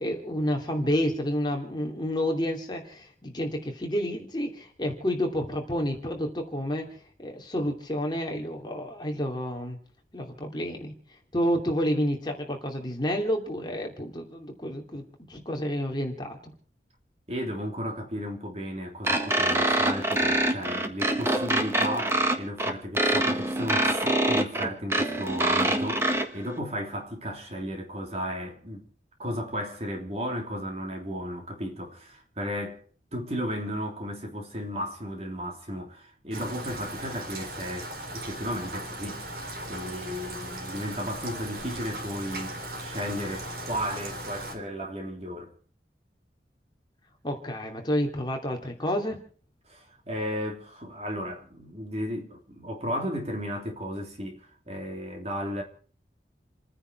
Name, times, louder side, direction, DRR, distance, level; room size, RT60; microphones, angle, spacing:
voice 1, 0.0-6.9 7.2-9.8 10.1-10.9 11.3-16.5 47.2-49.2, equal, 25° left, 2.8 m, -29 dB
voice 2, 17.3-28.8 29.2-32.8 33.1-39.3 39.7-45.5 49.7-55.6, equal, 35° right, 3.2 m, -34 dB
sound 1, 19.0-26.2, right 1 dB, 15° right, 1.5 m, -25 dB
Rain, 36.3-44.5, right 1 dB, 60° right, 4.1 m, -38 dB
29.5 x 10.0 x 4.6 m
head